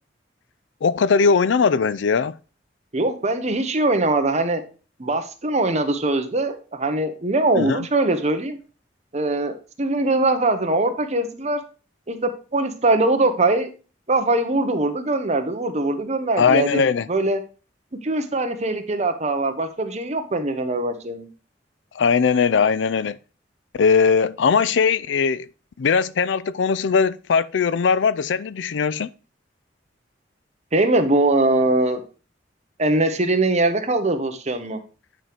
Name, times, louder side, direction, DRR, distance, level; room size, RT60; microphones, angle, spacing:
voice 1, 0.8-2.4 7.6-7.9 16.4-17.1 21.9-23.2 23.7-25.5 25.8-29.1, left 5 dB, 90° left, 0.4 m, -19 dB
voice 2, 2.9-4.6 5.0-8.6 9.1-11.6 12.1-13.7 14.1-16.8 17.1-17.4 18.0-21.3 30.7-32.0 32.8-34.8, right 2 dB, 40° right, 1.0 m, -22 dB
8.9 x 4.6 x 5.0 m
head